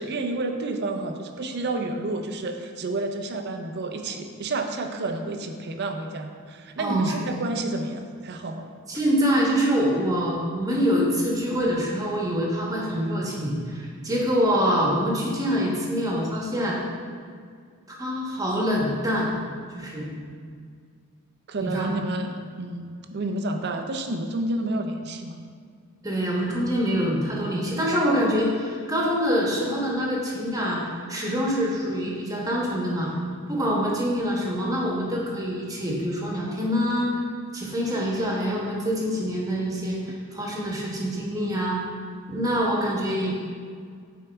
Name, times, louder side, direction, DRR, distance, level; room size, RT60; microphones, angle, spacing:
voice 1, 0.0-8.7 21.5-25.4, right 2 dB, 50° right, 5 dB, 0.5 m, -30 dB
voice 2, 6.8-7.1 8.9-16.8 18.0-19.4 19.7-20.1 21.6-21.9 26.0-33.1 33.5-37.1 37.5-41.8 42.3-43.3, equal, 15° right, -3 dB, 1.1 m, -25 dB
8.9 x 4.7 x 3.4 m, 2.1 s
head